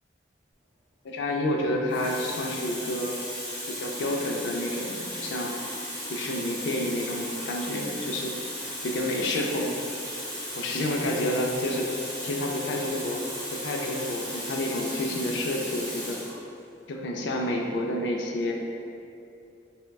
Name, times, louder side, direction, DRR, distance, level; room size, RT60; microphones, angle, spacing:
voice 1, 1.0-3.2 3.7-5.6 6.1-8.3 8.8-9.7 10.5-13.2 13.5-16.2 16.9-18.5, left 1 dB, 70° left, 0 dB, 0.3 m, -29 dB
Water tap faucet, 1.1-1.3 1.9-16.4 17.3-17.5, equal, 5° left, 0.6 m, -36 dB
3.3 x 2.1 x 2.2 m, 2.5 s
head